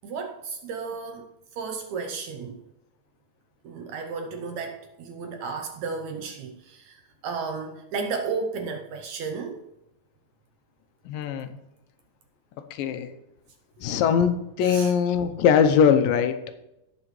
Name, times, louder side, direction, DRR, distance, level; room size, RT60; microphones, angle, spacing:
voice 1, 0.0-2.6 3.6-9.6 14.6-14.9, right 5 dB, 75° right, 1.8 m, -33 dB
voice 2, 11.1-11.6 12.7-13.1 13.8-16.5, left 7 dB, 85° left, 2.5 m, -21 dB
17.5 x 6.2 x 3.1 m
omnidirectional pair, 3.9 m